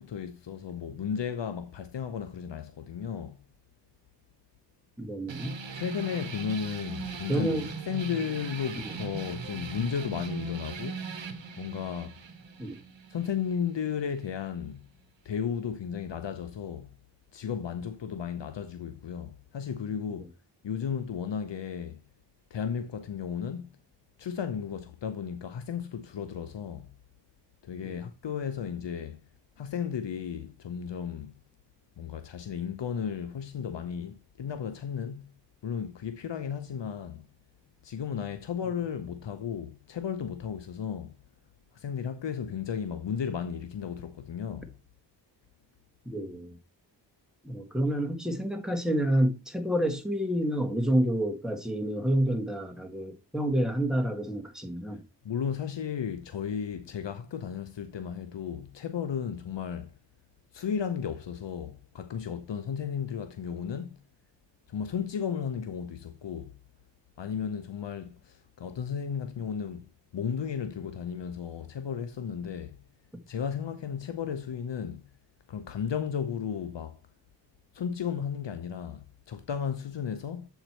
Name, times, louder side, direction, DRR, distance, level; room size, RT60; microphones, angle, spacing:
voice 1, 0.0-3.4 5.7-11.0 11.6-12.2 13.1-14.9 15.2-16.9 17.3-20.3 20.6-22.0 22.5-23.7 24.2-26.9 27.6-29.2 29.6-31.3 32.0-35.3 35.6-37.3 37.8-41.2 41.7-44.8 55.2-59.9 60.5-64.0 64.7-66.5 67.2-69.9 70.1-72.8 73.3-75.0 75.5-77.0 77.7-80.5, left 7 dB, 75° left, 0.7 m, -34 dB
voice 2, 5.0-5.6 7.3-7.7 12.6-12.7 27.8-27.9 46.0-46.6 47.4-55.0, right 1 dB, ahead, 1.7 m, -28 dB
sound 1, 5.3-14.3, right 4 dB, 85° right, 1.0 m, -40 dB
7.8 x 4.6 x 4.4 m
wide cardioid pair, 50°, 44 cm